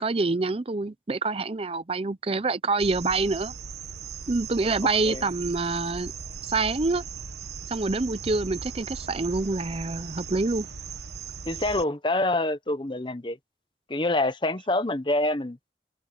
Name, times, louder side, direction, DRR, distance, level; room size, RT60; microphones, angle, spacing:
voice 1, 0.0-3.5 4.3-6.1 6.4-7.0 7.7-10.7, right 3 dB, 35° right, 0.6 m, -26 dB
sound 1, 2.8-11.8, right 5 dB, 70° right, 1.3 m, -38 dB
voice 2, 11.5-13.4 13.9-15.6, left 2 dB, 25° left, 1.0 m, -26 dB
head